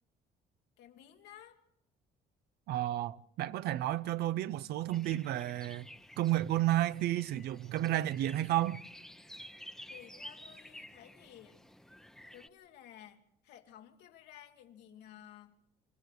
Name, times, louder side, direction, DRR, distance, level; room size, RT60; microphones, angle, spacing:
voice 1, 0.8-1.6 9.9-11.6 12.3-15.6, left 11 dB, 85° left, 2.0 m, -55 dB
voice 2, 2.7-5.9 6.2-8.8, right 14 dB, 75° right, 0.7 m, -32 dB
sound 1, 4.9-12.5, equal, ahead, 0.8 m, -52 dB
27.0 x 15.0 x 6.4 m
cardioid pair, 110°, 17 cm